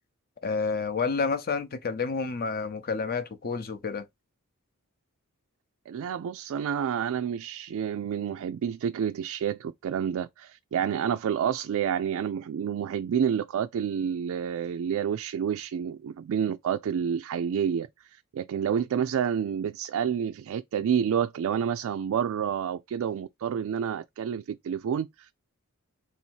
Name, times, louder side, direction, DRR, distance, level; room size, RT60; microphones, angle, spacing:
voice 1, 0.4-4.0, left 4 dB, 45° left, 0.6 m, -29 dB
voice 2, 5.9-25.3, right 8 dB, 65° right, 0.3 m, -29 dB
3.8 x 2.7 x 4.4 m
head